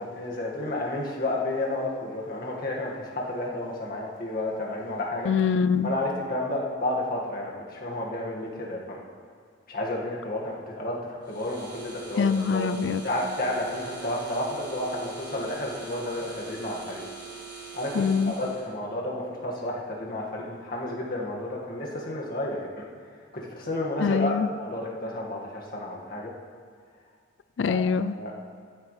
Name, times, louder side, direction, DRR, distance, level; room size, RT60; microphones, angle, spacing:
voice 1, 0.0-5.3 5.8-9.0 9.7-12.7 13.0-17.0 17.7-22.6 23.3-26.3 27.6-27.8 28.2-28.4, left 1 dB, 50° left, -3 dB, 1.9 m, -31 dB
voice 2, 5.3-5.9 12.2-13.0 18.0-18.3 24.0-24.5 27.6-28.1, left 6 dB, 70° left, 15 dB, 0.4 m, -24 dB
sound 1, 11.2-18.7, right 5 dB, 25° right, 2.1 m, -43 dB
14.5 x 9.6 x 3.3 m, 2.1 s
head